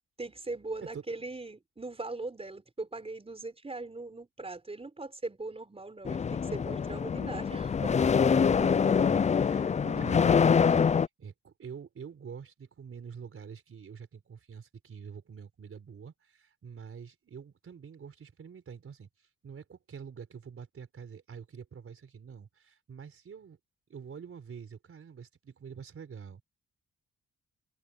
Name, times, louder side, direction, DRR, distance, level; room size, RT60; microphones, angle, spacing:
voice 1, 0.2-8.0, right 2 dB, 20° right, 5.0 m, -40 dB
sound 1, 6.0-11.1, left 6 dB, 25° left, 0.4 m, -25 dB
voice 2, 7.9-19.1 19.4-23.6 23.9-26.4, right 6 dB, 45° right, 4.6 m, -46 dB
cardioid pair, 90°, 30 cm